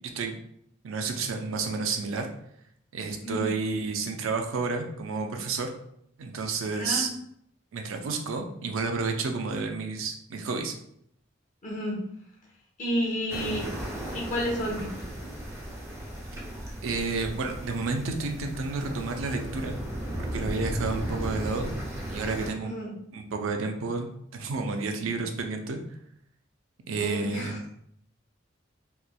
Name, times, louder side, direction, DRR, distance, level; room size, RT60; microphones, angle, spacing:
voice 1, 0.8-2.3 2.9-5.7 6.2-7.1 7.7-10.7 16.8-19.8 20.3-21.7 22.1-22.8 23.1-25.8 26.9-27.5, right 4 dB, 85° right, 4 dB, 0.4 m, -30 dB
voice 2, 6.8-7.1 11.6-12.0 12.8-13.7 14.1-14.9 22.6-22.9 26.9-27.7, equal, 35° left, -1 dB, 0.6 m, -31 dB
sound 1, 13.3-22.5, right 1 dB, 15° right, 0.5 m, -35 dB
3.0 x 2.1 x 2.2 m, 0.71 s
head